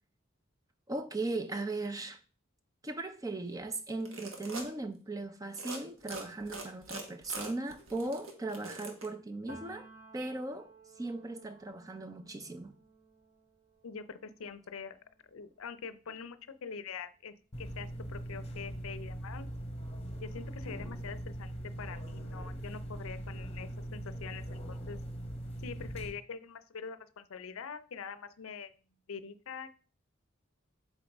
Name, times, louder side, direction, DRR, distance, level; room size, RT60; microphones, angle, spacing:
voice 1, 0.9-2.2 2.8-9.9 10.1-10.7 11.0-12.8, right 2 dB, 15° right, 0.5 m, -38 dB
sound 1, 3.9-4.7 5.5-5.8 6.1-9.1, right 3 dB, 75° right, 1.3 m, -42 dB
Piano, 9.5-17.1 17.4-19.0, right 2 dB, 45° right, 2.4 m, -57 dB
voice 2, 13.8-15.0 15.3-19.5 20.2-25.0 25.6-28.7 29.1-29.8, left 6 dB, 85° left, 0.5 m, -44 dB
sound 2, 17.5-26.1, right 1 dB, 30° left, 1.0 m, -41 dB
7.9 x 4.0 x 3.4 m
head